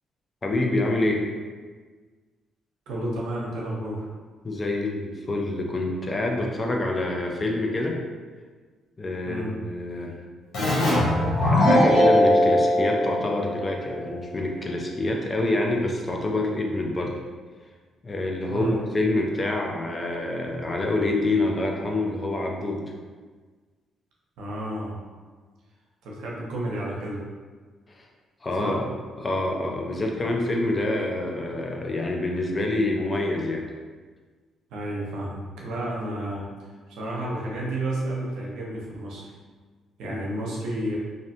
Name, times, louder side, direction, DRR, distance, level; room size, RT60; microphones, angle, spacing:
voice 1, 0.4-1.3 4.4-8.0 9.0-10.1 11.4-17.1 18.0-22.8 27.9-28.1 28.4-28.9 29.2-33.6, left 2 dB, 30° left, 1 dB, 0.4 m, -26 dB
voice 2, 2.9-4.1 9.3-9.5 18.5-18.8 24.4-25.0 26.0-27.2 28.6-28.8 34.7-36.4 36.9-39.3 40.0-41.0, right 1 dB, 85° right, -3 dB, 0.6 m, -31 dB
Keyboard (musical), 10.5-13.9, left 1 dB, 70° left, 0.9 m, -20 dB
2.5 x 2.1 x 2.7 m, 1.5 s
cardioid pair, 90°, 0 cm